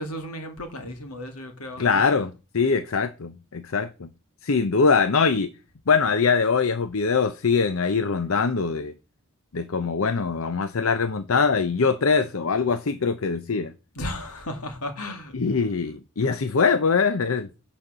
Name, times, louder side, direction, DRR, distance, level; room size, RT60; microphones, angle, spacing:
voice 1, 0.0-2.2 13.9-15.3, left 1 dB, 90° left, 2.2 m, -34 dB
voice 2, 1.8-4.1 4.4-5.5 5.9-8.9 9.5-13.7 15.3-17.5, left 5 dB, 70° left, 0.7 m, -23 dB
9.8 x 4.3 x 6.7 m
head